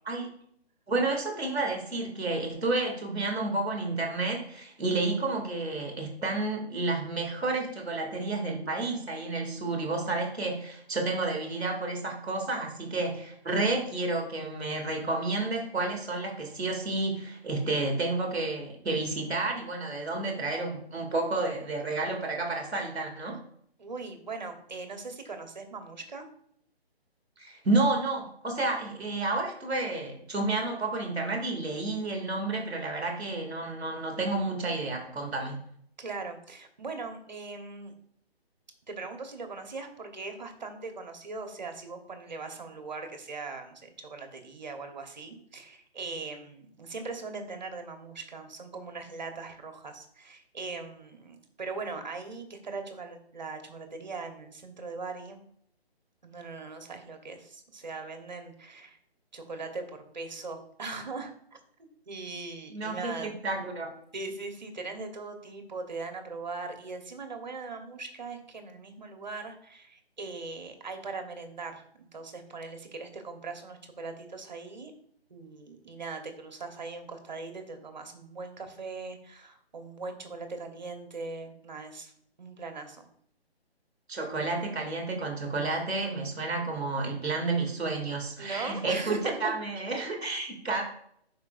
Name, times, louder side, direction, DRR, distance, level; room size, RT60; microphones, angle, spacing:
voice 1, 0.9-23.4 27.4-35.6 62.7-63.9 84.1-90.8, right 3 dB, ahead, -21 dB, 0.7 m, -30 dB
voice 2, 23.8-26.2 36.0-37.9 38.9-55.4 56.2-59.0 59.3-59.8 60.1-63.3 64.1-74.9 75.3-82.1 82.4-83.1 88.4-89.5, right 3 dB, 45° right, 5 dB, 1.1 m, -40 dB
10.5 x 4.7 x 2.5 m, 0.69 s
hypercardioid pair, 175°, 32 cm